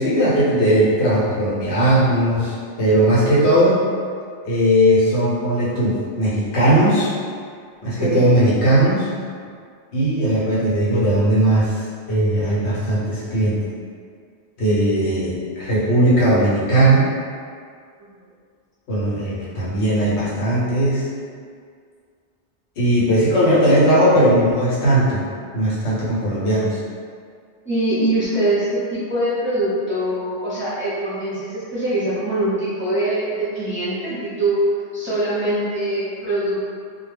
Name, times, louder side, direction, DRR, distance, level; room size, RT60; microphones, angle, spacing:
voice 1, 0.0-3.8 4.4-7.1 7.8-9.1 9.9-11.8 12.1-13.6 14.6-17.1 18.9-21.1 22.8-25.2 25.5-26.8, right 1 dB, 80° left, -8 dB, 1.0 m, -18 dB
voice 2, 27.6-34.7 34.9-36.7, right 1 dB, 15° right, -12 dB, 0.5 m, -23 dB
2.2 x 2.1 x 3.2 m, 2.1 s
omnidirectional pair, 1.1 m